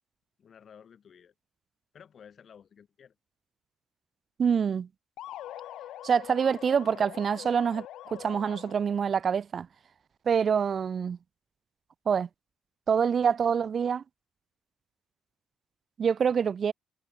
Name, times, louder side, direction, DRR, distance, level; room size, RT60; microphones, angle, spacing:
voice 1, 0.4-1.3 1.9-3.2, left 7 dB, 55° left, 2.8 m, -53 dB
voice 2, 4.4-4.9 6.0-9.7 10.3-11.2 12.1-12.3 12.9-14.0 16.0-16.7, right 7 dB, 50° right, 0.6 m, -26 dB
sound 1, 5.2-9.0, left 13 dB, 80° left, 0.5 m, -44 dB
cardioid pair, 90°, 0 cm